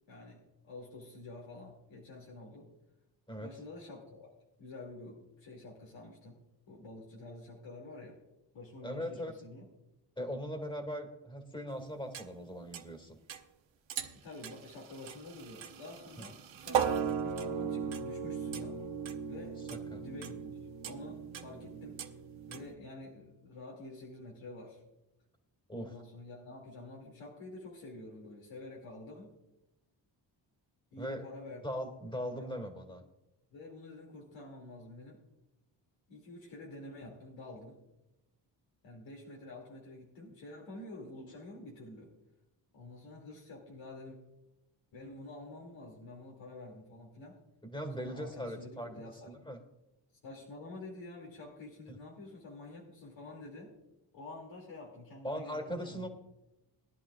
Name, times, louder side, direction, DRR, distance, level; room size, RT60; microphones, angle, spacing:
voice 1, 0.1-2.7 3.4-4.3 4.6-6.4 6.7-8.2 8.5-9.7 14.2-18.8 19.3-19.6 20.0-20.6 20.8-22.0 22.5-24.8 25.7-29.3 30.9-31.6 32.3-32.5 33.5-35.2 36.1-37.8 38.8-42.1 42.7-44.2 44.9-47.4 48.0-49.3 50.2-53.7 54.1-56.1, left 2 dB, 90° left, -3 dB, 2.6 m, -48 dB
voice 2, 8.8-9.3 10.2-13.2 19.7-20.1 25.7-25.9 31.0-31.3 31.6-33.0 47.6-48.9 49.2-49.6 55.2-56.1, equal, 10° left, 4 dB, 2.2 m, -39 dB
sound 1, 12.1-12.2 12.7-12.8 13.3-13.4 13.9-14.2 14.4-22.7, right 7 dB, 90° right, 1.1 m, -37 dB
20.0 x 11.0 x 2.4 m, 0.95 s
cardioid pair, 100°, 45 cm